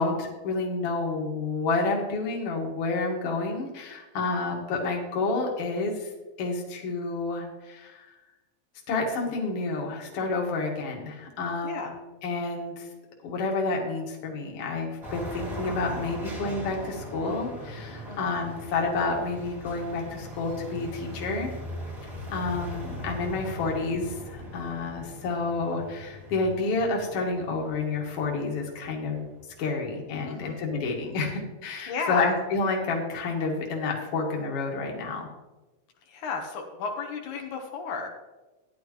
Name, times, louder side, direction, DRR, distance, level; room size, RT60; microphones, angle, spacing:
voice 1, 0.0-6.1 6.4-8.1 8.9-11.9 12.2-12.9 13.2-21.5 22.3-29.3 29.6-35.3, left 3 dB, 55° left, 0 dB, 2.4 m, -29 dB
sound 1, 15.0-29.8, left 1 dB, 15° right, 2.4 m, -40 dB
voice 2, 30.3-30.6 31.9-32.3 36.1-38.1, left 5 dB, 85° left, 3 dB, 2.7 m, -33 dB
13.0 x 10.0 x 3.1 m, 1.1 s
omnidirectional pair, 3.4 m